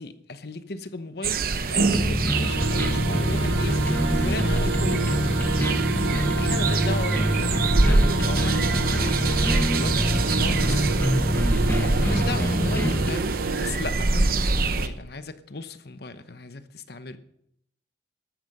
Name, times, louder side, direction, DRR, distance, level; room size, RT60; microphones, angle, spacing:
voice 1, 0.0-5.6 6.4-13.3 13.6-17.2, left 2 dB, 55° left, 1.0 m, -36 dB
sound 1, 1.2-14.9, right 3 dB, 50° right, 0.9 m, -25 dB
sound 2, 1.9-13.1, equal, 10° left, 0.9 m, -25 dB
sound 3, 2.3-13.7, right 5 dB, 80° right, 0.9 m, -31 dB
14.0 x 12.5 x 5.4 m
head